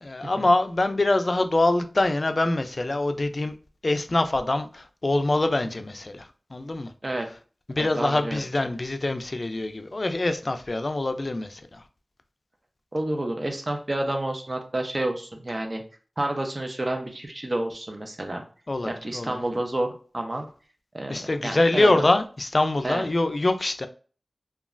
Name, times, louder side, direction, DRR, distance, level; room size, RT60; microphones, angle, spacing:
voice 1, 0.0-3.5 3.8-6.9 7.7-11.8 18.7-19.4 21.1-23.9, left 2 dB, 50° left, 0.3 m, -24 dB
voice 2, 7.8-8.7 12.9-15.8 16.2-18.4 18.9-20.5 20.9-22.0 22.8-23.1, right 1 dB, 45° right, 0.6 m, -30 dB
3.0 x 2.3 x 2.4 m
wide cardioid pair, 50°, 0 cm